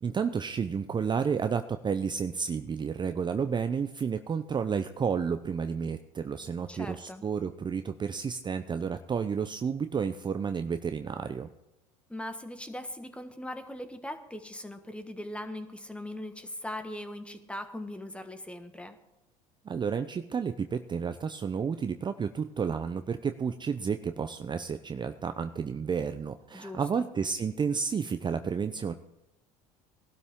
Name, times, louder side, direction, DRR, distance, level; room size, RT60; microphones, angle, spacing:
voice 1, 0.0-11.5 19.7-28.9, right 6 dB, 25° right, 9 dB, 0.6 m, -31 dB
voice 2, 6.7-7.2 12.1-19.0 26.5-27.1, left 1 dB, 5° left, 8 dB, 1.5 m, -40 dB
19.0 x 12.5 x 3.7 m, 0.91 s
hypercardioid pair, 80°, 18 cm